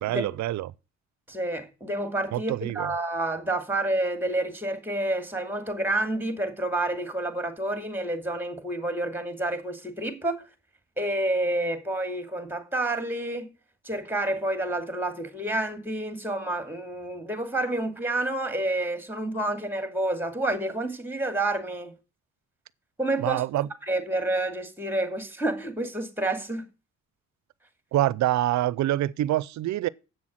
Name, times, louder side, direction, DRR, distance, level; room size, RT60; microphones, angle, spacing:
voice 1, 0.0-0.7 2.3-2.9 23.2-23.7 27.9-29.9, right 14 dB, 65° right, 0.6 m, -26 dB
voice 2, 1.3-10.4 11.0-13.5 13.8-21.9 23.0-23.4 23.9-26.7, right 1 dB, 5° right, 2.3 m, -29 dB
8.1 x 6.2 x 7.5 m
cardioid pair, 90°, 30 cm